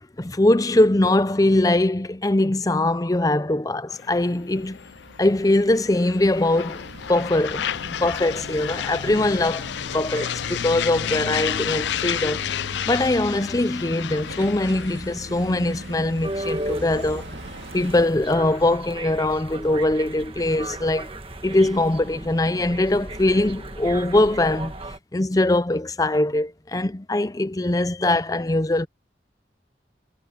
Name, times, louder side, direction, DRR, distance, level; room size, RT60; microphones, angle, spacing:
voice 1, 0.2-4.8 5.2-7.7 8.0-12.5 12.9-17.3 17.7-21.1 21.4-24.7 25.1-28.9, left 1 dB, 20° left, 0.6 m, -22 dB
sound 1, 3.9-18.8, left 9 dB, 75° left, 0.4 m, -32 dB
sound 2, 4.4-18.1, right 2 dB, 80° right, 1.9 m, -40 dB
sound 3, 16.2-25.0, right 1 dB, 30° right, 1.5 m, -35 dB
head